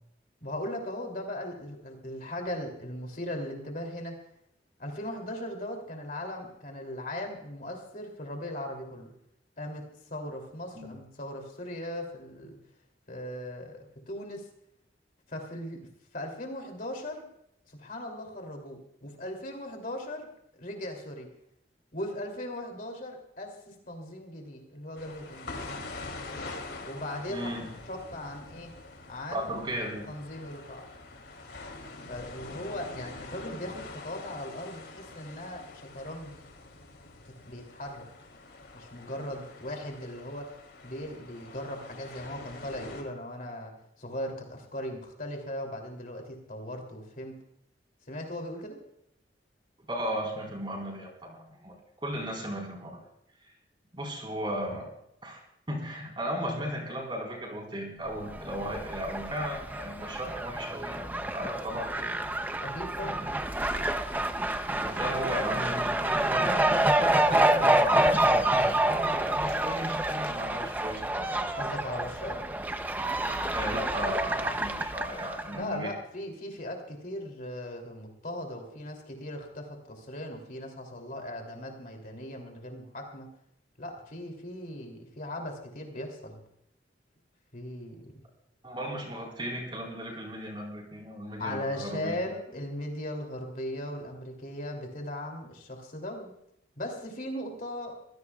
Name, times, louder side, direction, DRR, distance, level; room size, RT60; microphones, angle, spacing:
voice 1, 0.4-4.2 4.8-9.1 9.6-9.8 10.1-12.6 13.1-14.5 15.3-15.8 16.1-17.2 17.7-20.3 20.5-21.3 21.9-25.5 26.9-27.5 27.9-28.7 29.1-29.5 30.1-30.8 32.1-36.3 37.2-38.1 38.7-40.6 40.8-47.4 48.1-48.8 62.6-63.2 71.6-72.4 75.5-83.3 83.8-86.4 87.5-88.1 91.4-96.3 96.8-97.9, left 1 dB, 50° left, 2 dB, 3.0 m, -38 dB
sound 1, 25.0-43.0, left 3 dB, 65° left, 2.9 m, -45 dB
voice 2, 27.3-27.7 29.3-30.1 49.9-51.7 52.0-53.0 53.9-54.8 55.2-55.4 55.7-62.1 63.0-63.3 64.8-71.6 73.5-75.9 88.6-92.3, equal, 25° right, 0 dB, 4.5 m, -35 dB
Fowl, 58.2-75.6, right 1 dB, 10° right, 0.7 m, -28 dB
25.0 x 16.5 x 2.4 m, 0.78 s
head